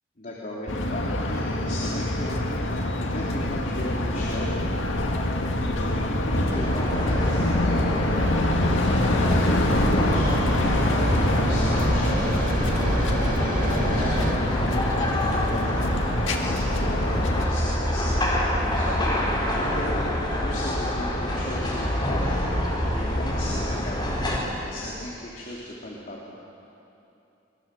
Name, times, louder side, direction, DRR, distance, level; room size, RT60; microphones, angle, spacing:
voice 1, 0.2-4.6 5.7-8.2 8.8-10.8 11.5-12.5 13.3-15.9 16.4-19.0 19.6-20.0 20.3-22.5 22.9-24.0 24.6-26.2, left 1 dB, 45° left, -6 dB, 3.3 m, -37 dB
sound 1, 0.7-17.5, left 1 dB, 90° left, 1.9 m, -26 dB
sound 2, 2.5-14.3, right 1 dB, 45° right, 2.3 m, -30 dB
sound 3, 6.5-24.4, left 1 dB, 25° left, 4.8 m, -26 dB
25.5 x 21.5 x 7.7 m, 2.8 s
head